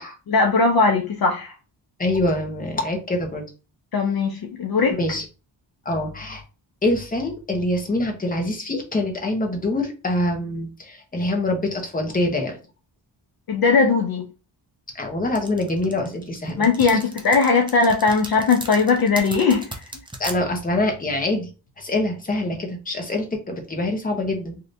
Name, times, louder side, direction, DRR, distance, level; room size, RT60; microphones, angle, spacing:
voice 1, 0.3-1.5 3.9-5.0 13.5-14.2 16.6-19.8, left 4 dB, 55° left, 0.5 m, -19 dB
voice 2, 2.0-3.4 4.9-5.2 5.8-6.4 6.8-12.6 14.9-17.0 20.2-21.5 21.8-24.6, left 1 dB, 20° left, 0.8 m, -25 dB
sound 1, 15.3-20.4, right 2 dB, 10° right, 0.4 m, -36 dB
3.2 x 2.7 x 2.6 m
wide cardioid pair, 155°, 44 cm